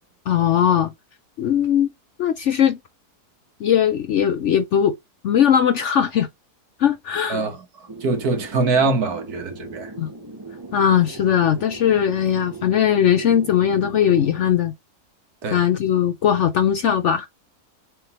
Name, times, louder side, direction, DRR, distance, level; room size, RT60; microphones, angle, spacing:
voice 1, 0.3-0.9 1.4-1.9 2.2-2.8 3.6-4.9 5.2-6.3 6.8-7.4 10.0-10.1 10.7-14.7 15.5-17.3, left 9 dB, 65° left, 0.7 m, -19 dB
voice 2, 7.3-9.9 15.4-15.6, right 3 dB, 70° right, 1.8 m, -23 dB
sound 1, 7.9-14.5, right 3 dB, 20° right, 0.9 m, -38 dB
6.9 x 3.5 x 4.1 m
omnidirectional pair, 1.7 m